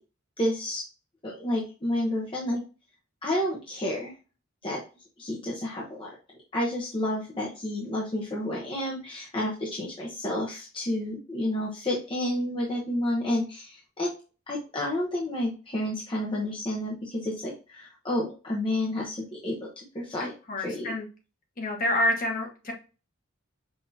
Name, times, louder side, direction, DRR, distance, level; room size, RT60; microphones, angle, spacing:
voice 1, 0.4-0.8 1.2-2.6 3.2-4.1 4.6-4.8 5.2-6.1 6.5-14.1 14.5-20.3 20.6-20.9, left 1 dB, 25° left, -3 dB, 0.9 m, -30 dB
voice 2, 20.2-21.1 21.6-22.7, left 1 dB, 45° left, 1 dB, 1.3 m, -28 dB
5.7 x 2.8 x 2.7 m, 0.33 s
head